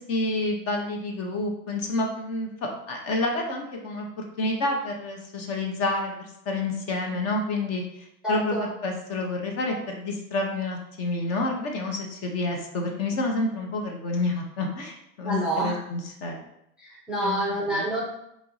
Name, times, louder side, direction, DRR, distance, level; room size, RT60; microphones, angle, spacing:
voice 1, 0.0-4.1 4.4-6.1 6.4-16.4 17.2-17.4 17.7-17.9, left 2 dB, 35° left, 2 dB, 0.9 m, -29 dB
voice 2, 8.2-8.7 15.2-15.7 16.8-18.0, right 1 dB, ahead, -5 dB, 0.7 m, -27 dB
4.3 x 3.0 x 4.0 m, 0.78 s
hypercardioid pair, 120°, 46 cm